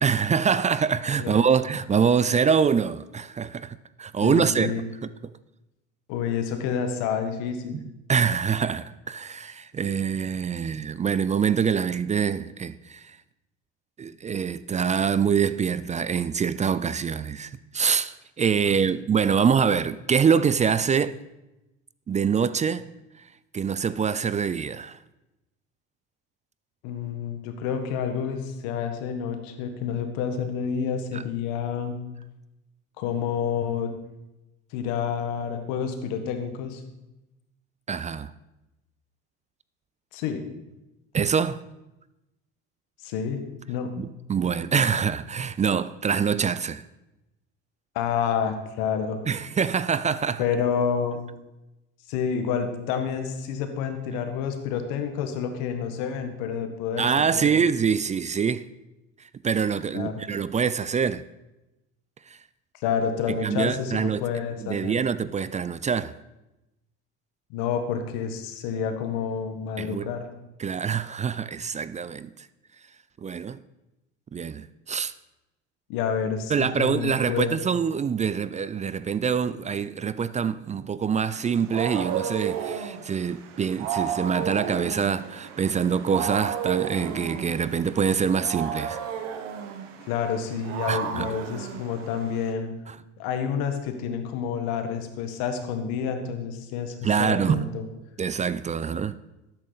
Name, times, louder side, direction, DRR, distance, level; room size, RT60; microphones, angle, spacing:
voice 1, 0.0-4.7 5.0-5.1 7.7-13.2 14.0-21.2 22.1-22.8 23.5-25.0 31.1-31.2 37.9-38.3 41.1-41.6 44.0-46.8 49.3-50.4 57.0-58.7 59.4-61.2 63.4-64.2 64.6-66.1 69.8-70.1 70.6-72.3 73.2-73.6 74.3-75.1 76.5-89.0 90.9-91.3 92.9-93.0 97.0-97.7 98.2-99.2, right 6 dB, 20° right, 0.3 m, -25 dB
voice 2, 4.2-4.9 6.1-7.8 18.6-18.8 26.8-32.0 33.0-33.9 34.7-36.8 40.1-40.4 43.0-43.4 43.7-43.9 47.9-49.2 50.4-51.2 52.1-57.6 59.9-60.2 62.8-65.1 67.5-70.3 75.9-77.6 90.1-92.7 93.2-97.8, left 7 dB, 75° left, 1.6 m, -29 dB
Wild animals, 81.3-92.5, right 8 dB, 85° right, 1.3 m, -33 dB
12.5 x 8.8 x 4.1 m
supercardioid pair, 85°, 36 cm